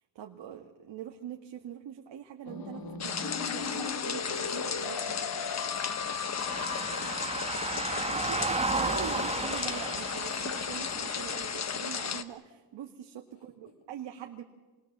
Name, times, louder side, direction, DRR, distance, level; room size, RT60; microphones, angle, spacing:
voice 1, 0.2-5.2 8.1-14.4, right 9 dB, 70° right, 2 dB, 2.0 m, -43 dB
sound 1, 2.5-7.4, left 5 dB, 50° left, 2.4 m, -38 dB
sound 2, 3.0-12.2, left 6 dB, 35° left, 1.2 m, -34 dB
voice 2, 5.9-8.2 13.3-13.7, left 4 dB, 70° left, 2 dB, 7.0 m, -54 dB
sound 3, 6.3-11.5, right 3 dB, 15° right, 1.0 m, -34 dB
28.5 x 21.5 x 7.4 m, 1.2 s
cardioid pair, 145°, 44 cm